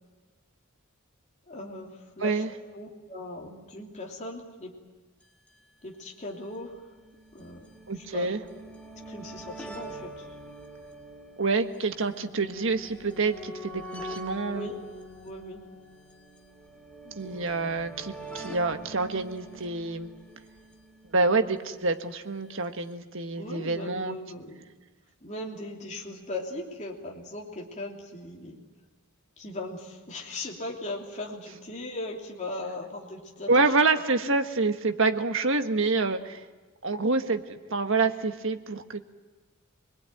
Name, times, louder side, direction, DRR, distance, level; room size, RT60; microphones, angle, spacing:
voice 1, 1.5-2.4 2.7-4.8 5.8-6.8 7.3-7.7 8.1-8.3 9.1-10.3 14.5-14.8 15.2-15.6 17.0-17.5 23.4-24.6 25.2-28.6 29.4-33.5 34.2-34.3, left 2 dB, 35° left, -1 dB, 3.1 m, -38 dB
voice 2, 2.2-2.5 7.9-8.4 11.4-14.7 17.2-20.1 21.1-24.2 33.5-36.4 36.8-39.0, right 3 dB, 65° right, 7 dB, 1.5 m, -27 dB
sound 1, 5.2-5.3 5.5-5.6 6.4-21.7 22.6-22.7 22.9-23.0, right 1 dB, 5° left, 2.9 m, -44 dB
25.0 x 21.5 x 9.2 m, 1.3 s
head